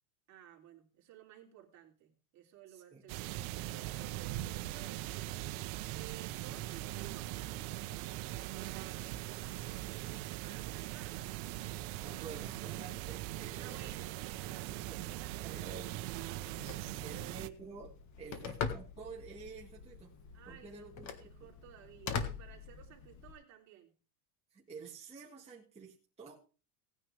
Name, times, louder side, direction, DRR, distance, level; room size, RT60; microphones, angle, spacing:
voice 1, 0.3-5.3 5.9-11.5 13.6-16.3 16.7-17.4 18.3-18.5 20.3-23.9, right 10 dB, 35° right, 0 dB, 3.3 m, -56 dB
voice 2, 2.7-3.0 12.0-14.1 14.9-15.0 15.3-16.2 16.6-20.1 20.5-21.5 24.5-26.3, right 5 dB, 15° right, -4 dB, 2.0 m, -50 dB
sound 1, 3.1-17.5, right 16 dB, 60° right, 0.9 m, -41 dB
Telephone, 16.3-23.3, left 6 dB, 35° left, 1.7 m, -43 dB
18.0 x 9.7 x 3.4 m, 0.36 s
supercardioid pair, 150°, 47 cm